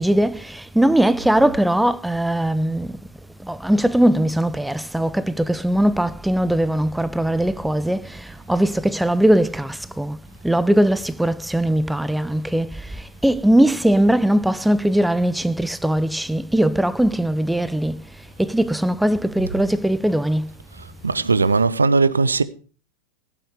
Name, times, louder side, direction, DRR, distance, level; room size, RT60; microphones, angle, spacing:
voice 1, 0.0-3.0 3.4-10.2 10.4-18.0 18.4-20.5, right 1 dB, 5° right, 0.6 m, -20 dB
voice 2, 21.0-22.4, right 4 dB, 75° right, 0.8 m, -18 dB
16.5 x 9.0 x 5.0 m
figure-of-eight pair, 90°, 0 cm